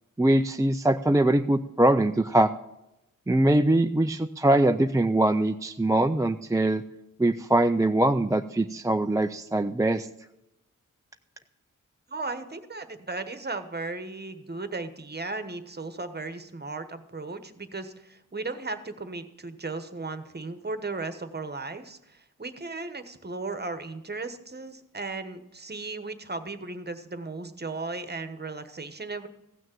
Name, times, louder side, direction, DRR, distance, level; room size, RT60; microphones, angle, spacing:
voice 1, 0.2-2.5 3.3-6.8 7.2-10.1, right 1 dB, 10° right, 7 dB, 0.4 m, -22 dB
voice 2, 12.1-29.3, right 3 dB, 30° right, 10 dB, 1.2 m, -36 dB
15.5 x 6.4 x 9.0 m, 0.91 s
wide cardioid pair, 80°, 32 cm